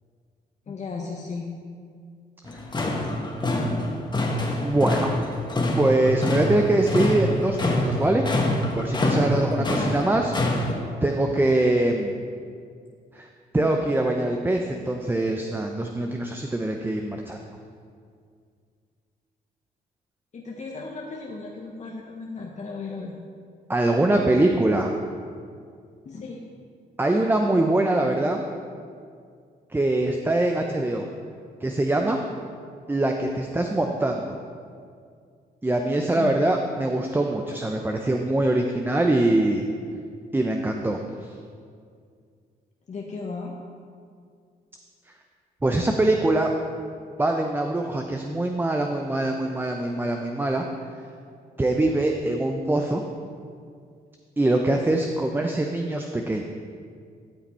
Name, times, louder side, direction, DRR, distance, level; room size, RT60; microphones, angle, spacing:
voice 1, 0.7-1.6 9.7-9.9 20.3-23.2 26.0-26.4 36.1-36.4 42.9-43.6, left 4 dB, 45° left, -1 dB, 1.0 m, -35 dB
sound 1, 2.5-10.7, left 1 dB, 25° left, 1.5 m, -26 dB
voice 2, 4.6-5.1 5.8-8.2 8.8-10.7 11.0-12.2 13.1-13.3 13.5-17.4 23.7-24.9 27.0-28.4 29.7-31.0 31.6-32.2 32.9-34.4 35.6-39.7 40.3-41.0 45.6-46.5 47.2-50.7 51.6-53.0 54.4-56.4, right 2 dB, 10° right, 3 dB, 0.6 m, -23 dB
13.0 x 5.8 x 4.3 m, 2.2 s
cardioid pair, 80°, 17 cm